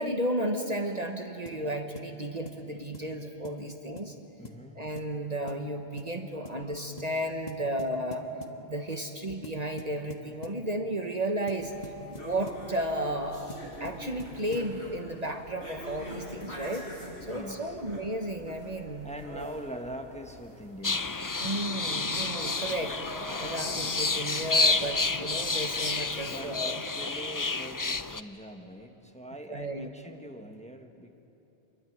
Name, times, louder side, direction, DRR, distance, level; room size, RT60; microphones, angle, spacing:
voice 1, 0.0-4.2 4.7-8.3 8.7-13.5 13.8-19.1 21.4-23.0 23.4-26.8 29.5-29.9, right 1 dB, 40° right, 5 dB, 1.4 m, -33 dB
sound 1, 1.5-1.7 2.0-2.1 2.5-2.7 2.9-3.1 3.4-3.7 4.0-4.1 4.4-4.6 5.0-5.2 5.5-5.7 6.0-6.1 6.4-6.6 7.0-7.2 7.5-8.6 9.4-10.6 11.5-12.7 13.5-14.7, left 3 dB, 40° left, 1.7 m, -45 dB
voice 2, 4.4-4.8 6.3-6.9 8.9-9.0 17.2-17.8 19.0-21.1 26.2-31.3, equal, 5° left, 4 dB, 1.4 m, -43 dB
sound 2, 11.6-26.5, equal, 75° left, 7.0 m, -45 dB
sound 3, 20.8-28.2, left 3 dB, 25° left, 0.5 m, -30 dB
26.5 x 22.5 x 9.5 m, 2.9 s
omnidirectional pair, 1.1 m